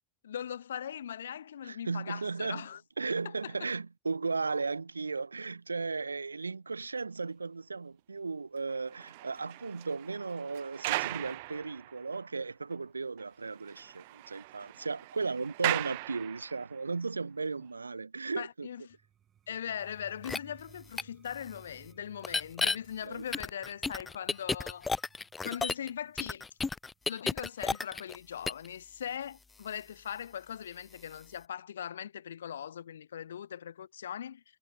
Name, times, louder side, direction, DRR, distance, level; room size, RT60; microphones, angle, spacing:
voice 1, 0.2-2.8 3.2-3.5 18.4-18.8 19.5-24.9 25.4-26.4 27.1-34.4, left 9 dB, 75° left, 3.4 m, -40 dB
voice 2, 1.6-2.7 3.0-18.7 23.0-23.2, right 4 dB, 85° right, 0.9 m, -36 dB
sound 1, 8.7-12.4 12.7-12.8 13.2-13.3 13.5-16.8 17.5-17.7, right 21 dB, 65° right, 0.6 m, -38 dB
sound 2, 18.9-28.7, right 9 dB, 35° right, 6.0 m, -61 dB
sound 3, 20.2-20.4 21.0-21.1 22.2-22.8 23.3-25.9 26.2-28.2 28.5-28.7, left 4 dB, 20° left, 0.9 m, -32 dB
figure-of-eight pair, 75°, 0 cm